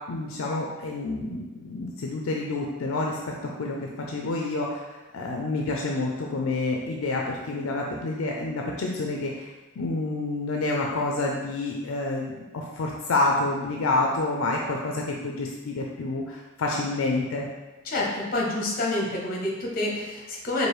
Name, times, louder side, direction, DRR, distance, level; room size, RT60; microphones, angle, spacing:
voice 1, 0.1-3.2 3.6-3.8 4.1-17.5, left 2 dB, 75° left, -1 dB, 0.4 m, -28 dB
voice 2, 17.9-20.7, left 2 dB, 45° left, -2 dB, 0.8 m, -28 dB
4.6 x 2.6 x 3.1 m, 1.1 s
head